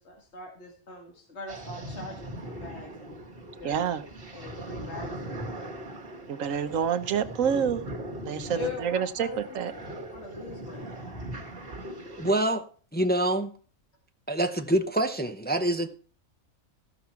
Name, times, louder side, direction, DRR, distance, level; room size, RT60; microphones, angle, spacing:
voice 1, 0.0-3.2 3.6-3.9 4.2-5.7 8.5-9.4 9.7-11.0, left 4 dB, 55° left, 0 dB, 2.3 m, -42 dB
sound 1, 1.5-12.4, right 1 dB, 45° right, 2.1 m, -40 dB
voice 2, 3.6-4.0 6.3-7.8 8.2-9.7, right 8 dB, 70° right, 10 dB, 1.3 m, -28 dB
voice 3, 12.2-12.6 12.9-13.5 14.3-15.9, right 1 dB, 10° left, 7 dB, 0.5 m, -25 dB
15.5 x 6.0 x 5.8 m, 0.42 s
omnidirectional pair, 1.4 m